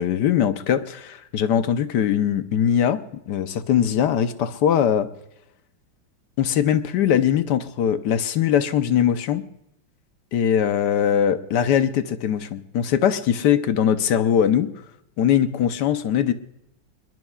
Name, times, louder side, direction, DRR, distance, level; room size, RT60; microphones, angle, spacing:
voice 1, 0.0-5.1 6.4-9.4 10.3-14.7 15.2-16.3, left 9 dB, 65° left, 10 dB, 1.3 m, -21 dB
27.0 x 21.5 x 2.4 m, 0.85 s
omnidirectional pair, 2.1 m